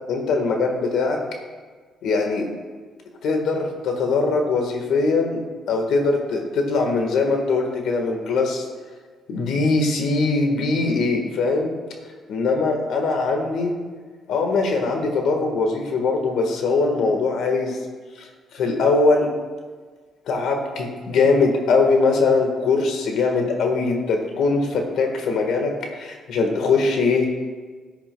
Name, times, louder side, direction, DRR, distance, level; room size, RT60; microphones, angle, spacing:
voice 1, 0.1-1.2 2.0-2.5 3.2-5.4 5.7-8.6 9.3-11.7 12.3-13.7 14.3-17.8 18.5-19.3 20.3-27.3, left 3 dB, 80° left, 3 dB, 1.4 m, -21 dB
14.0 x 9.8 x 2.3 m, 1.5 s
cardioid pair, 90°, 0 cm